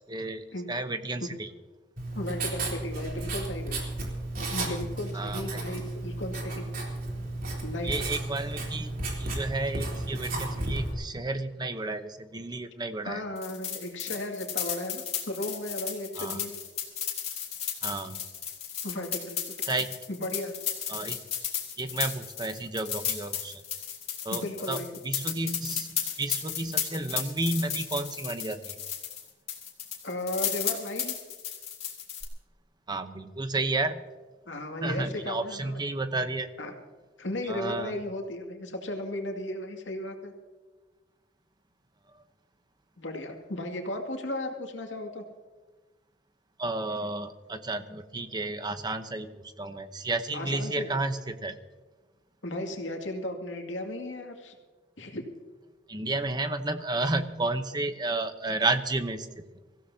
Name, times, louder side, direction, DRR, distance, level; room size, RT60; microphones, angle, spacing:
voice 1, 0.1-1.5 5.1-5.6 7.8-8.9 9.2-13.2 16.2-16.4 17.8-18.2 19.7-19.9 20.9-21.2 21.8-23.6 24.2-28.7 32.9-34.0 34.8-36.5 37.5-38.0 46.6-51.6 55.9-59.4, right 2 dB, 25° right, 9 dB, 0.9 m, -32 dB
Writing, 2.0-10.9, right 2 dB, 50° right, 3.5 m, -33 dB
voice 2, 2.1-3.8 4.5-6.6 7.6-8.1 13.0-16.5 18.8-19.4 20.1-20.5 24.3-24.9 30.0-31.1 34.5-35.8 36.6-36.7 37.2-40.3 43.0-45.2 50.3-51.0 52.4-54.5 55.0-55.2, left 1 dB, 85° left, 2 dB, 2.3 m, -35 dB
sound 1, 13.4-29.2 29.5-32.2, left 8 dB, 35° left, 2.8 m, -34 dB
24.5 x 15.5 x 2.8 m, 1.3 s
head